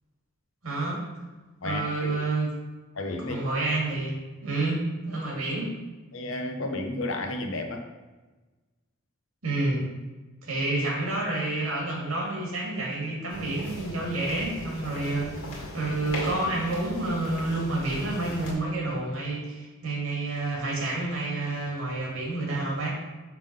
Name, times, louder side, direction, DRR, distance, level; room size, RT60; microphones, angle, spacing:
voice 1, 0.6-1.0 1.6-2.5 3.3-4.1 4.4-4.8 5.1-5.8 9.4-9.9 10.4-22.9, right 2 dB, 80° right, -2 dB, 2.0 m, -29 dB
voice 2, 1.6-2.2 2.9-3.4 6.1-7.8, left 2 dB, 70° left, 4 dB, 0.8 m, -32 dB
sound 1, 13.3-18.5, left 1 dB, 90° left, 1.9 m, -38 dB
5.9 x 3.7 x 5.3 m, 1.2 s
head